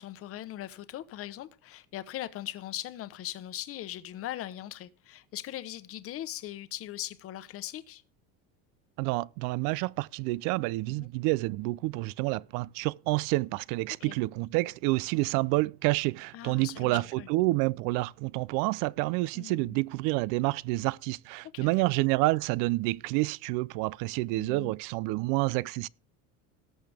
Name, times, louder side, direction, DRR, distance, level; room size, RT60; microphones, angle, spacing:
voice 1, 0.0-8.0 11.0-11.1 14.0-14.1 16.3-17.3 19.3-19.8 21.5-21.7 24.4-24.7, left 13 dB, 40° left, 1.0 m, -40 dB
voice 2, 9.0-25.9, right 21 dB, 65° right, 0.5 m, -28 dB
18.5 x 6.7 x 3.4 m
cardioid pair, 135°, 35 cm